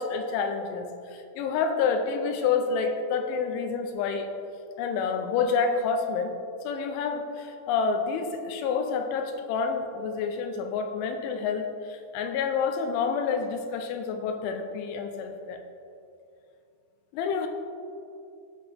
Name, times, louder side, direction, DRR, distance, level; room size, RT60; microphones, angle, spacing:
voice 1, 0.0-4.3 4.8-6.4 6.6-15.6 17.1-17.5, left 5 dB, 80° left, 5 dB, 3.1 m, -28 dB
16.5 x 6.0 x 3.5 m, 2.6 s
omnidirectional pair, 5.5 m